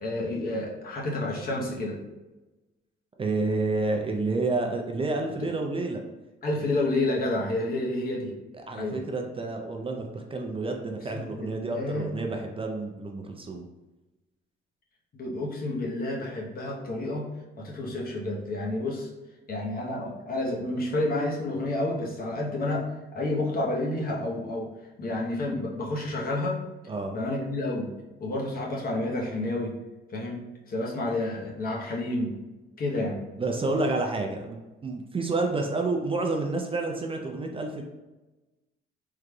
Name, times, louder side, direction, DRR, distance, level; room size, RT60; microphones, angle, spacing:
voice 1, 0.0-2.0 6.4-8.3 8.7-9.0 11.3-12.1 15.1-17.3 17.6-19.1 19.5-22.8 23.1-24.7 25.0-26.6 27.1-27.9 28.2-29.7 30.1-32.3 32.8-33.2, left 2 dB, 50° left, -2 dB, 0.9 m, -30 dB
voice 2, 3.2-6.0 8.7-13.6 26.9-27.2 33.4-37.8, right 3 dB, 25° right, 2 dB, 0.4 m, -29 dB
3.7 x 3.2 x 2.2 m, 1.1 s
cardioid pair, 90°, 20 cm